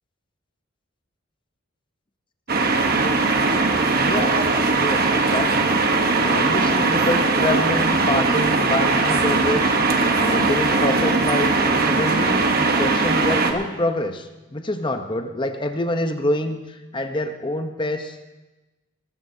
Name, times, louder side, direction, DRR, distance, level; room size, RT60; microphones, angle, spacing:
sound 1, 2.5-13.5, right 3 dB, 50° right, 1.1 m, -20 dB
voice 1, 3.9-4.5 4.8-5.7 6.2-9.8 10.2-18.4, left 1 dB, 25° left, 7 dB, 0.8 m, -26 dB
19.5 x 14.0 x 2.8 m, 1.1 s
head